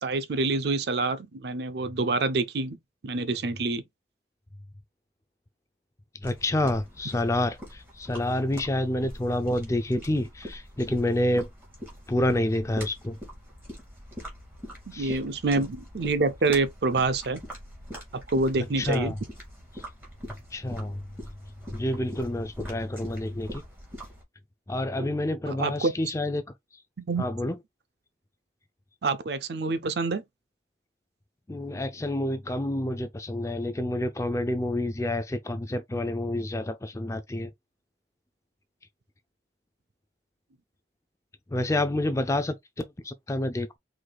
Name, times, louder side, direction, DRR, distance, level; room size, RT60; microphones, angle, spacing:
voice 1, 0.0-2.8 3.0-3.8 14.9-17.4 18.1-19.1 25.0-25.1 25.5-25.9 27.1-27.3 29.0-30.2, right 3 dB, 60° right, 0.5 m, -27 dB
voice 2, 6.2-11.5 12.1-13.2 14.9-15.2 18.8-19.2 19.7-19.8 20.5-21.0 21.7-23.6 24.7-26.4 27.2-27.6 31.5-37.5 41.5-43.8, left 1 dB, 15° left, 0.4 m, -28 dB
sound 1, 6.2-24.2, equal, 10° right, 2.7 m, -43 dB
4.7 x 3.9 x 2.3 m
head